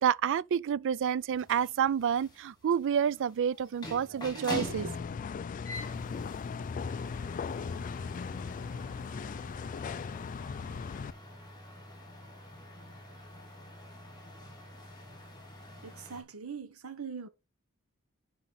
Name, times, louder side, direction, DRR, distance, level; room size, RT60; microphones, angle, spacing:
voice 1, 0.0-5.0, right 8 dB, 60° right, 0.3 m, -29 dB
sound 1, 1.3-16.2, left 1 dB, 20° left, 3.2 m, -46 dB
sound 2, 4.6-11.1, left 5 dB, 35° left, 0.3 m, -38 dB
voice 2, 15.8-17.3, right 6 dB, 75° right, 1.1 m, -42 dB
8.2 x 5.1 x 4.2 m
head